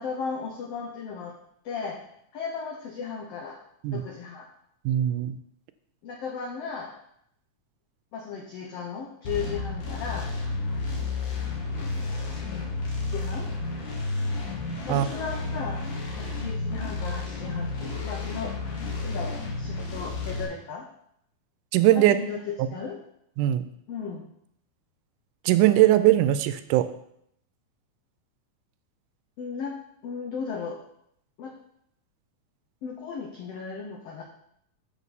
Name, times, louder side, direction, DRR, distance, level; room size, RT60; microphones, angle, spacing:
voice 1, 0.0-1.4 1.6-2.0 2.3-3.6 3.9-4.5 6.0-6.9 8.1-10.3 11.7-13.5 14.8-15.8 16.2-20.9 21.9-23.0 23.9-24.3 29.4-29.8 30.0-30.8 31.4-31.5 32.8-34.2, left 5 dB, 70° left, 2 dB, 1.5 m, -36 dB
voice 2, 4.9-5.4 14.9-15.1 21.7-22.2 23.4-23.6 25.5-26.9, right 14 dB, 85° right, 12 dB, 2.0 m, -20 dB
sound 1, 9.2-20.4, left 3 dB, 50° left, 1.7 m, -31 dB
7.4 x 7.1 x 4.1 m, 0.72 s
omnidirectional pair, 3.6 m